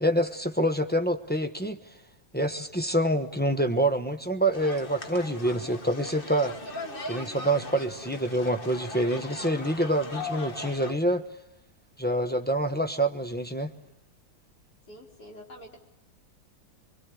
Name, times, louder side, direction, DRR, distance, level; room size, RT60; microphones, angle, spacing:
voice 1, 0.0-1.8 2.3-6.5 7.1-11.2 12.0-13.7, right 1 dB, 10° left, 5 dB, 0.6 m, -26 dB
sound 1, 4.5-10.9, left 3 dB, 30° left, 1.5 m, -39 dB
voice 2, 14.9-15.8, equal, 55° left, -1 dB, 5.2 m, -46 dB
25.0 x 23.5 x 8.4 m, 0.90 s
omnidirectional pair, 2.1 m